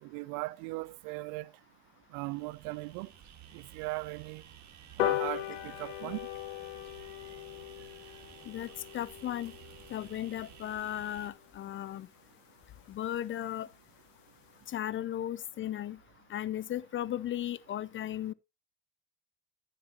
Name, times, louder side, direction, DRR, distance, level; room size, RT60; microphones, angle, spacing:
voice 1, 0.0-1.5 2.1-3.1 3.5-4.4 5.0-6.3, right 23 dB, 70° right, 0.6 m, -38 dB
sound 1, 2.1-11.3, right 10 dB, 50° right, 1.8 m, -54 dB
sound 2, 5.0-11.7 12.2-12.3 12.6-12.7 13.0-13.1 13.4-13.5 13.7-14.0 14.4-14.5, left 15 dB, 90° left, 0.9 m, -38 dB
voice 2, 8.9-9.5 9.9-12.1 12.9-13.7 14.7-16.0 16.3-18.3, left 12 dB, 35° left, 0.5 m, -36 dB
14.5 x 7.5 x 2.8 m
hypercardioid pair, 75°, 37 cm